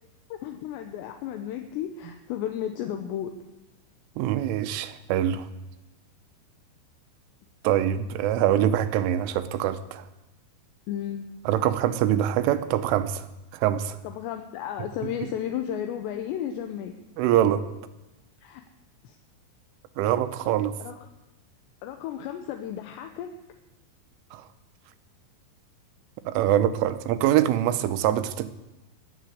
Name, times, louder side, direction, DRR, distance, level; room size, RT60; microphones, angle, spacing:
voice 1, 0.3-3.3 10.9-11.3 14.0-16.9 18.4-18.6 19.0-19.2 20.8-20.9 21.8-23.3, left 10 dB, 75° left, 6 dB, 2.7 m, -33 dB
voice 2, 4.2-5.5 7.6-10.1 11.5-13.3 13.5-14.0 17.2-17.7 20.0-20.7 24.3-24.5 26.3-28.5, right 11 dB, 90° right, 11 dB, 3.3 m, -24 dB
21.0 x 7.4 x 7.9 m, 1.0 s
omnidirectional pair, 5.7 m